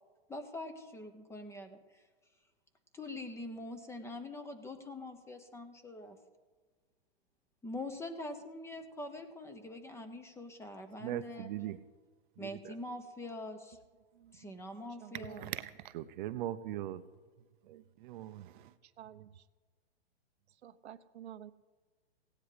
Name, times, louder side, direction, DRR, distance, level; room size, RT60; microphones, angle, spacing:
voice 1, 0.3-1.8 2.9-6.2 7.6-11.5 12.4-13.8 14.3-15.5, left 1 dB, 10° left, 1.0 m, -44 dB
voice 2, 11.0-11.8 12.4-12.7 15.4-17.0 17.7-18.7, right 13 dB, 50° right, 0.7 m, -40 dB
voice 3, 14.1-14.5 15.0-15.4 19.0-19.4 20.6-21.5, right 10 dB, 80° right, 0.8 m, -50 dB
17.0 x 9.9 x 5.1 m
hypercardioid pair, 135°, 32 cm